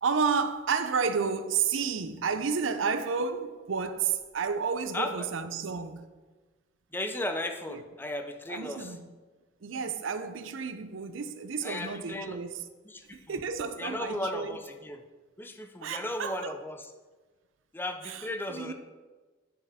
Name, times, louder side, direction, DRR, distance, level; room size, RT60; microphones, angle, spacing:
voice 1, 0.0-6.1 7.7-7.8 8.5-9.0 9.6-12.6 13.1-14.6 15.8-16.6 18.0-18.2 18.5-18.7, right 5 dB, 90° right, 0.6 m, -31 dB
voice 2, 4.9-5.3 6.9-9.0 11.6-12.4 12.8-13.4 13.8-15.0 15.4-16.9 17.7-18.7, left 1 dB, 10° left, 0.5 m, -35 dB
9.7 x 5.8 x 3.5 m
head